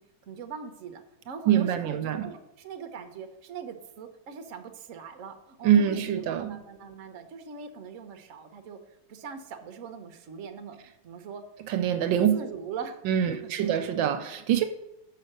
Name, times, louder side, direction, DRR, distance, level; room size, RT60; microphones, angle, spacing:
voice 1, 0.3-8.8 9.1-11.4 12.0-13.0 13.3-13.8, right 5 dB, 55° right, 6 dB, 1.0 m, -41 dB
voice 2, 1.5-2.2 5.6-6.5 11.7-12.3 13.1-14.6, right 9 dB, 80° right, 9 dB, 1.3 m, -24 dB
6.4 x 5.7 x 6.6 m, 0.89 s
omnidirectional pair, 2.1 m